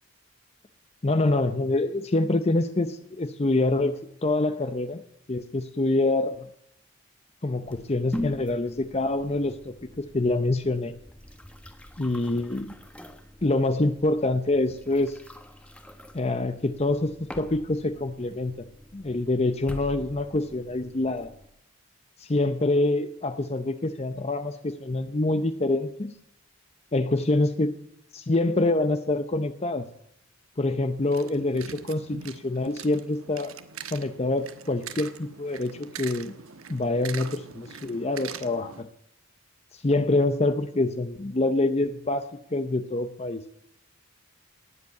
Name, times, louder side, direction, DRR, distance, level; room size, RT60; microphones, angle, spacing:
voice 1, 1.0-5.0 5.3-6.5 7.4-10.9 12.0-12.7 13.4-15.2 16.1-18.7 18.9-21.3 22.2-26.1 26.9-27.7 28.1-29.9 30.6-33.5 33.9-36.3 36.7-38.9 39.7-42.2 42.5-43.4, left 2 dB, 30° left, 10 dB, 0.7 m, -26 dB
sound 1, 7.6-21.5, left 1 dB, 5° left, 1.3 m, -43 dB
sound 2, 31.0-38.8, right 7 dB, 85° right, 1.2 m, -42 dB
19.0 x 8.0 x 8.4 m, 0.79 s
head